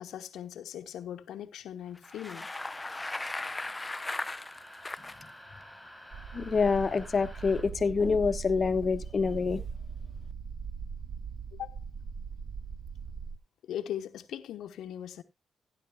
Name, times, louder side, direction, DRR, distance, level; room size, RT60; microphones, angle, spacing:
voice 1, 0.0-2.5 11.5-11.8 13.6-15.2, left 10 dB, 90° left, 1.0 m, -39 dB
Bicycle, 1.9-5.2, left 2 dB, 15° left, 0.6 m, -37 dB
sound 1, 2.6-7.6, equal, ahead, 6.1 m, -50 dB
sound 2, 6.1-13.4, right 5 dB, 55° right, 1.1 m, -40 dB
voice 2, 6.3-9.6, left 5 dB, 40° left, 1.1 m, -27 dB
16.0 x 11.0 x 2.3 m
cardioid pair, 95°, 0 cm